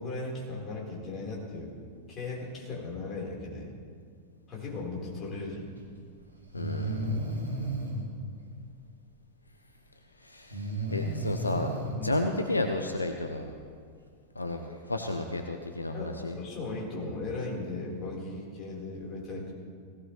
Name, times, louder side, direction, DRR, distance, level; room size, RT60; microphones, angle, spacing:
voice 1, 0.0-1.7 2.1-3.7 4.5-5.7 7.5-7.7 12.0-12.2 15.9-19.5, left 3 dB, 30° left, -3 dB, 4.6 m, -37 dB
Breathing, 5.7-5.8 6.5-8.0 10.5-12.0, right 1 dB, 80° right, 2.3 m, -33 dB
voice 2, 6.5-7.1 10.2-13.5 14.3-16.4, left 2 dB, 80° left, 5 dB, 0.8 m, -32 dB
18.0 x 16.5 x 3.4 m, 2.1 s
figure-of-eight pair, 90°, 0 cm